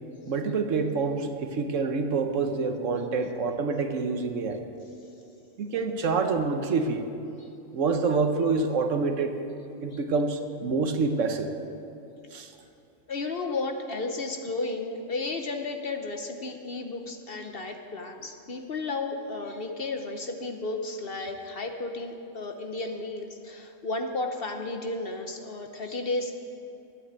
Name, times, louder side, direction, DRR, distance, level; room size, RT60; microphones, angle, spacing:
voice 1, 0.3-4.6 5.6-7.1 7.7-9.3 9.8-11.5 12.3-12.5, right 4 dB, 65° right, 6 dB, 1.2 m, -27 dB
voice 2, 13.1-26.3, left 3 dB, 50° left, 5 dB, 0.9 m, -33 dB
12.0 x 9.4 x 8.0 m, 2.8 s
omnidirectional pair, 1.4 m